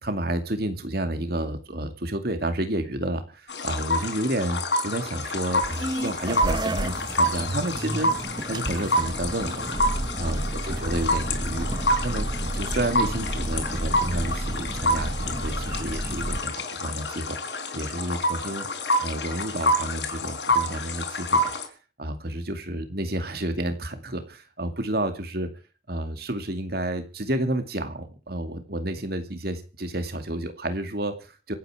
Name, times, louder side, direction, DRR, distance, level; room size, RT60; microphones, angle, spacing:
voice 1, 0.0-8.1 8.5-9.8 10.2-12.3 12.5-17.4 17.7-18.7 19.0-21.5 22.0-25.5 25.9-31.5, right 1 dB, 60° right, 7 dB, 2.4 m, -30 dB
sound 1, 3.5-21.7, left 1 dB, 90° left, 4.4 m, -28 dB
sound 2, 5.5-16.4, right 1 dB, 25° right, 0.8 m, -31 dB
26.0 x 9.4 x 5.0 m, 0.36 s
head